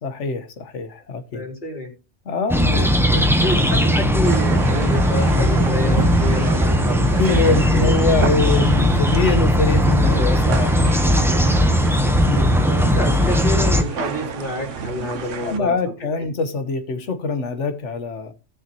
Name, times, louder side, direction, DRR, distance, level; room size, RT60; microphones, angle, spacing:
voice 1, 0.0-1.4 2.2-3.3 7.2-11.3 12.1-12.9 15.4-18.3, left 4 dB, 75° left, 1.5 m, -24 dB
voice 2, 1.3-1.9 3.4-8.3 11.2-12.0 12.8-16.3, left 1 dB, 40° left, 3.5 m, -29 dB
sound 1, 2.5-13.8, equal, ahead, 0.8 m, -18 dB
sound 2, 4.2-15.6, right 6 dB, 90° right, 1.4 m, -30 dB
17.5 x 6.5 x 2.9 m
omnidirectional pair, 1.2 m